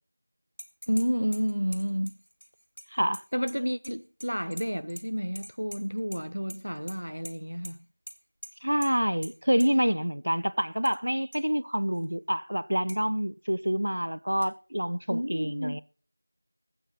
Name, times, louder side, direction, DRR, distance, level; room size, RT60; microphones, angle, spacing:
sound 1, 0.6-1.1 1.3-3.9 4.2-5.0 5.4-6.2 6.5-7.0 7.2-7.3 7.6-7.7 8.1-8.2 8.4-8.5 8.8-8.9 9.2-9.3 9.6-9.7 10.6-11.0 11.3-11.4 11.9-12.0 12.9-13.0 14.4-14.5, equal, 65° right, 2.9 m, -43 dB
voice 1, 0.9-2.2 3.3-7.8 15.1-15.8, equal, 90° right, 0.7 m, -30 dB
voice 2, 2.9-3.2 8.6-15.8, equal, 50° right, 0.6 m, -27 dB
26.5 x 9.1 x 4.2 m
figure-of-eight pair, 180°, 0 cm